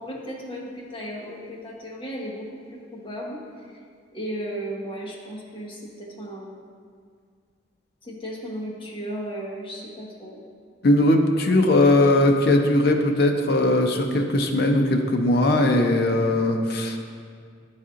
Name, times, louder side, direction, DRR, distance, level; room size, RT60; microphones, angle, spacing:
voice 1, 0.0-3.8 4.1-6.6 8.0-10.4, equal, 25° left, -5 dB, 1.0 m, -35 dB
voice 2, 10.8-17.0, left 1 dB, 55° left, 3 dB, 0.6 m, -19 dB
10.0 x 4.2 x 2.5 m, 2.1 s
head